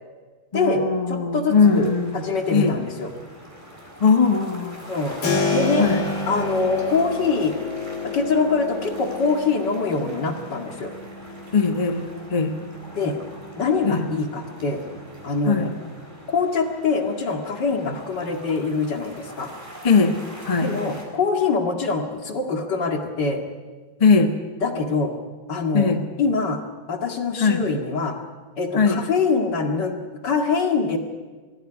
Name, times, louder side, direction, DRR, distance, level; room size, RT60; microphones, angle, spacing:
voice 1, 0.5-2.2 2.5-2.8 4.0-4.9 5.8-6.0 11.5-12.0 12.3-12.6 13.8-14.1 15.4-15.7 19.8-20.7 24.0-24.3 25.7-26.0 27.4-27.6 28.7-29.0, left 5 dB, 20° left, 6 dB, 1.2 m, -19 dB
voice 2, 1.1-3.1 4.9-5.2 5.5-5.9 6.3-7.5 8.1-10.9 13.0-13.2 13.6-14.8 15.2-15.7 16.3-19.5 20.6-23.4 24.6-25.1 25.5-25.9 26.2-26.6 26.9-28.1 28.6-29.9 30.2-31.0, left 4 dB, 60° left, 4 dB, 2.7 m, -24 dB
sound 1, 1.5-21.1, equal, 20° right, 4.4 m, -43 dB
Keyboard (musical), 5.2-15.9, left 3 dB, 75° left, 2.9 m, -31 dB
23.0 x 15.5 x 9.9 m, 1.4 s
omnidirectional pair, 2.2 m